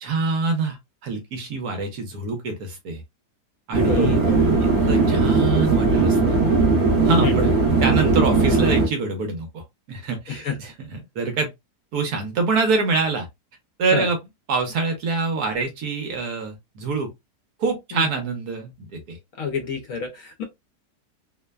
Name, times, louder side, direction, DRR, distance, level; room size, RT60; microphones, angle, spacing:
voice 1, 0.0-0.8 1.0-3.0 3.7-4.2 4.9-6.4 7.0-7.5 7.8-11.5 11.9-13.3 13.8-14.2 14.5-17.1 17.6-19.2, right 4 dB, 75° right, 1.3 m, -25 dB
sound 1, 3.7-8.9, right 3 dB, 40° right, 1.1 m, -18 dB
voice 2, 3.8-4.4 7.2-7.4 10.3-10.6 13.9-14.1 17.9-18.1 19.4-20.4, left 5 dB, 65° left, 1.0 m, -28 dB
3.1 x 2.1 x 2.2 m
omnidirectional pair, 1.7 m